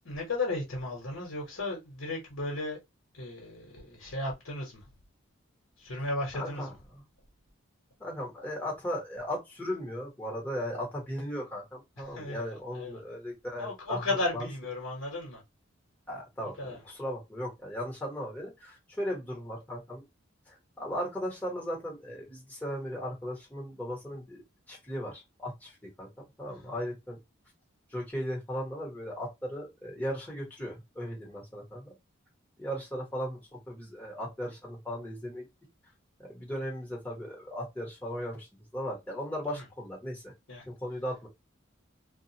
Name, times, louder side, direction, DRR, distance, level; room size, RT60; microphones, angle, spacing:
voice 1, 0.0-2.8 3.1-4.9 5.8-6.7 12.0-13.0 13.6-15.4 16.4-16.8 26.5-26.8 39.5-39.6 40.5-40.7, left 2 dB, 90° left, 1.1 m, -35 dB
voice 2, 6.3-6.7 8.0-14.0 14.3-14.4 16.1-20.0 20.5-24.4 24.7-26.1 26.4-27.2 27.9-32.0 32.6-35.5 36.2-38.5 38.7-40.3 40.7-41.3, equal, 10° left, 1.2 m, -37 dB
2.4 x 2.3 x 2.8 m
head